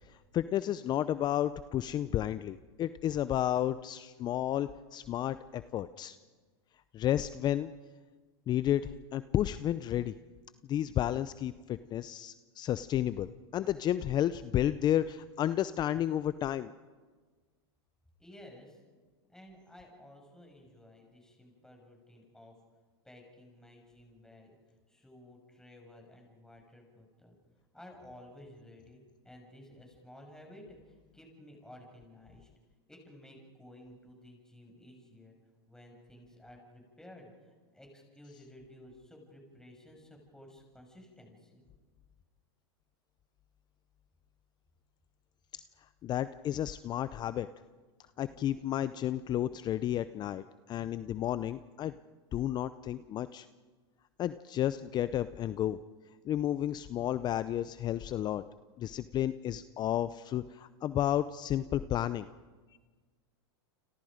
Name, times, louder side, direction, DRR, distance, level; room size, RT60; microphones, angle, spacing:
voice 1, 0.1-6.2 6.9-7.7 8.5-10.1 10.7-16.7 46.0-47.5 48.2-51.9 52.3-53.5 54.2-55.8 56.2-58.4 58.8-62.3, left 11 dB, 30° left, 14 dB, 0.6 m, -32 dB
voice 2, 18.2-18.8 19.3-22.6 23.0-24.6 24.9-27.4 27.7-32.5 32.9-35.4 35.7-41.7, left 1 dB, 5° left, 1 dB, 6.4 m, -54 dB
29.0 x 26.5 x 5.2 m, 1.4 s
hypercardioid pair, 115°, 13 cm